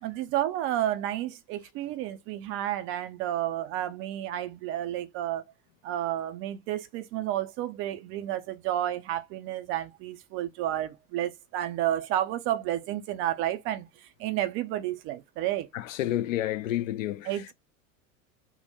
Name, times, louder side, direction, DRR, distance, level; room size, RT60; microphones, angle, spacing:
voice 1, 0.0-5.4 5.8-13.9 14.2-15.7 17.3-17.5, right 12 dB, 30° right, 0.4 m, -31 dB
voice 2, 15.7-17.5, left 13 dB, 65° left, 0.6 m, -30 dB
3.7 x 2.1 x 4.0 m
figure-of-eight pair, 80°, 43 cm